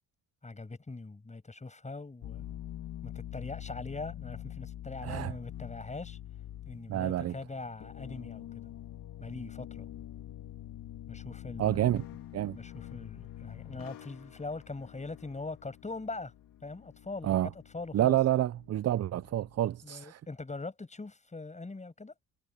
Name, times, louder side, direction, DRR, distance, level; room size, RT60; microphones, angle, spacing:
voice 1, 0.4-2.5 3.0-6.2 6.7-8.7 9.2-9.9 11.1-11.8 12.5-16.3 16.6-18.2 19.8-22.1, left 3 dB, 20° left, 7.3 m, -42 dB
sound 1, 2.2-19.6, left 12 dB, 80° left, 3.0 m, -46 dB
voice 2, 5.0-5.3 6.9-7.4 11.6-12.0 12.3-12.6 17.2-17.5 17.9-20.2, right 12 dB, 45° right, 0.6 m, -28 dB
cardioid pair, 90°, 34 cm